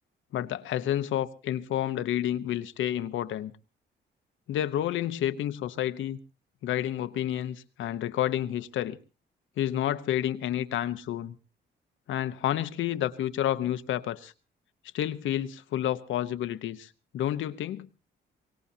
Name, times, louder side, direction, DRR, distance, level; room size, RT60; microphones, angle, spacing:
voice 1, 0.3-3.5 4.5-6.2 6.6-9.0 9.6-11.3 12.1-14.3 14.9-17.9, left 11 dB, 75° left, 1.0 m, -30 dB
23.5 x 18.0 x 2.8 m
cardioid pair, 90°, 20 cm